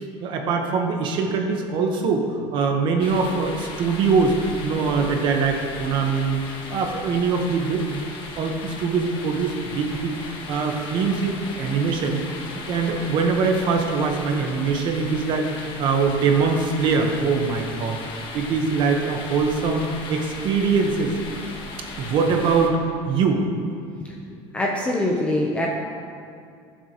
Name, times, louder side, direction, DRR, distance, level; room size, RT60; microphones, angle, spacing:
voice 1, 0.2-6.4 6.7-8.0 8.4-18.0 18.3-21.2 22.0-22.8 23.1-23.5, right 4 dB, 40° right, 3 dB, 1.1 m, -23 dB
sound 1, 3.0-22.7, left 3 dB, 40° left, 1.3 m, -37 dB
voice 2, 24.0-25.7, left 1 dB, 10° left, -2 dB, 0.7 m, -25 dB
18.0 x 7.2 x 3.0 m, 2.3 s
cardioid pair, 175°, 12 cm